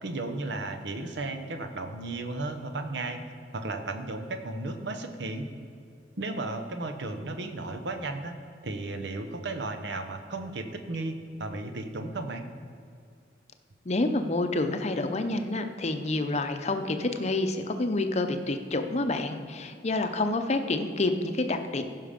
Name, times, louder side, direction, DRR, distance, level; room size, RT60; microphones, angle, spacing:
voice 1, 0.0-3.2 3.5-5.5 6.2-8.3 8.6-11.1 11.4-12.4, right 2 dB, 70° right, 6 dB, 0.9 m, -34 dB
voice 2, 13.8-21.8, left 2 dB, 40° left, 7 dB, 0.7 m, -28 dB
15.0 x 5.7 x 5.2 m, 2.3 s
head